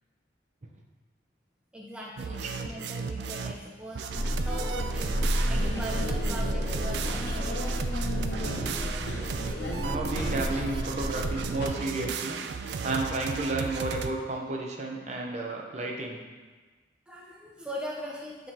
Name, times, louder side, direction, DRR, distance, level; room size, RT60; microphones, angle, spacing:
voice 1, 1.7-4.1 4.4-7.7 17.1-18.5, equal, 5° right, -3 dB, 0.5 m, -40 dB
sound 1, 2.2-3.6 4.0-14.1, right 5 dB, 70° right, 0.3 m, -35 dB
sound 2, 4.1-11.7, equal, 70° left, 1.1 m, -30 dB
voice 2, 9.8-12.4 12.8-16.2, right 2 dB, 40° right, 0 dB, 0.7 m, -32 dB
9.1 x 3.7 x 2.8 m, 1.3 s
head